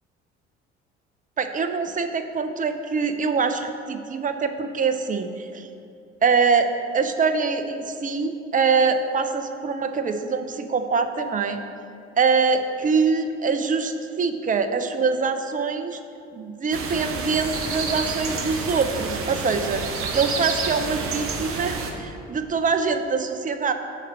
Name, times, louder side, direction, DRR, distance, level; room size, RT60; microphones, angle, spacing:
voice 1, 1.4-5.7 6.2-6.7 6.9-11.6 12.2-16.0 16.3-19.8 20.1-23.7, right 5 dB, 25° right, 8 dB, 0.6 m, -24 dB
sound 1, 16.7-21.9, right 4 dB, 45° right, 0.9 m, -29 dB
6.5 x 4.2 x 6.4 m, 2.5 s
figure-of-eight pair, 50°, 32 cm